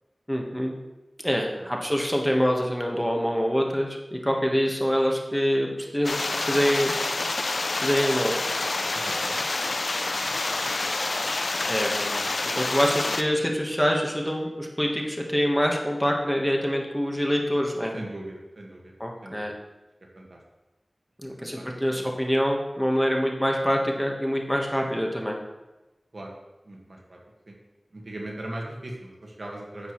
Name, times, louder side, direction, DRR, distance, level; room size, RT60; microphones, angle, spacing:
voice 1, 0.3-0.7 1.2-6.1 6.5-6.9 7.8-8.3 11.7-12.2 12.5-17.9 19.0-19.5 21.2-25.3, equal, ahead, 0 dB, 1.4 m, -25 dB
sound 1, 6.0-13.2, left 2 dB, 75° left, 0.5 m, -28 dB
voice 2, 8.9-9.4 10.1-10.9 11.5-11.7 17.9-18.9 19.2-19.5 20.1-20.4 21.4-21.6 21.9-22.0 26.1-26.3 26.6-27.2 27.5-27.6 27.9-29.9, right 1 dB, 70° right, -1 dB, 1.7 m, -40 dB
10.0 x 7.9 x 3.2 m, 1.1 s
wide cardioid pair, 50°, 0 cm